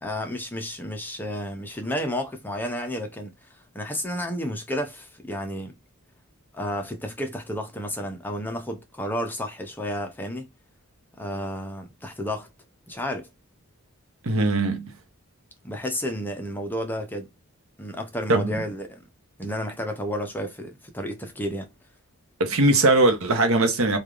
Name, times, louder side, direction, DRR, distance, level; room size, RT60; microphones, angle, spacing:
voice 1, 0.0-5.7 6.5-10.5 11.2-12.5 12.9-13.3 15.6-17.3 17.8-19.0 19.4-21.7, equal, 10° left, 0.6 m, -31 dB
voice 2, 14.2-14.9 18.3-18.6 22.4-24.0, right 2 dB, 65° right, 0.8 m, -20 dB
3.2 x 2.4 x 2.4 m
head